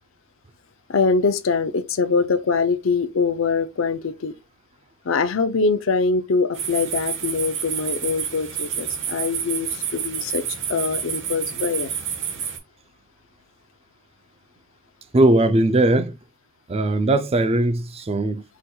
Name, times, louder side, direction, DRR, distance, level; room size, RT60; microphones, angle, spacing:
voice 1, 0.9-4.3 5.1-10.4 10.7-11.9, left 4 dB, 75° left, 0.5 m, -23 dB
sound 1, 6.5-12.6, right 7 dB, 65° right, 1.3 m, -29 dB
voice 2, 15.1-16.2 16.7-18.4, right 2 dB, 30° right, 0.5 m, -19 dB
5.0 x 4.3 x 2.3 m
head